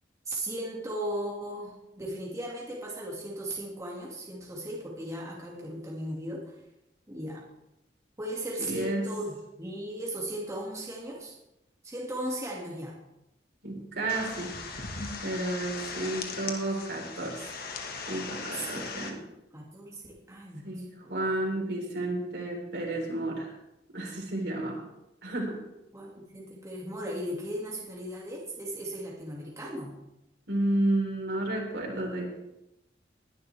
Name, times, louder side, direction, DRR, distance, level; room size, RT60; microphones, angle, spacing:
voice 1, 0.3-6.6 7.1-7.4 8.2-11.4 11.8-13.0 18.5-19.2 19.5-21.4 25.9-30.0, right 1 dB, 20° right, -4 dB, 2.3 m, -37 dB
voice 2, 8.6-9.1 13.6-14.5 15.2-17.6 18.1-19.2 20.6-23.5 23.9-24.8 25.2-25.6 30.5-32.3, right 1 dB, 70° right, -1 dB, 4.2 m, -31 dB
sound 1, 14.1-19.1, left 4 dB, 55° left, 1.6 m, -38 dB
20.5 x 11.0 x 3.5 m, 0.90 s
head